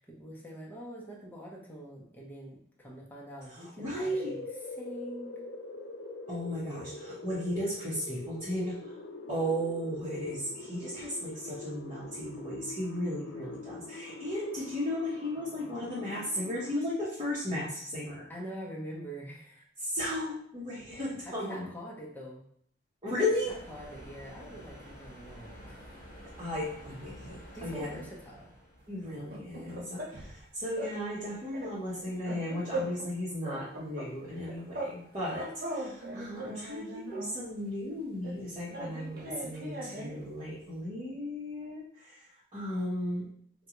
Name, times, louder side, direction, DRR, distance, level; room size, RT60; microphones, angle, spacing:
voice 1, 0.0-5.4 18.3-19.7 21.3-22.5 23.5-26.0 27.5-28.5, right 1 dB, 10° left, -4 dB, 0.7 m, -45 dB
voice 2, 3.6-4.3 6.3-8.9 9.3-18.3 19.8-21.7 23.0-23.5 26.4-28.0 28.9-42.3 42.5-43.2, left 1 dB, 30° right, -9 dB, 0.9 m, -35 dB
sound 1, 4.1-16.8, left 3 dB, 80° left, 0.4 m, -44 dB
sound 2, 23.4-29.0, equal, 50° left, 0.9 m, -49 dB
sound 3, 29.1-30.4 30.7-31.0 31.2-33.1 33.4-35.0 35.2-37.4 38.2-40.2, right 1 dB, 55° right, 0.5 m, -40 dB
3.6 x 2.3 x 2.9 m, 0.64 s
head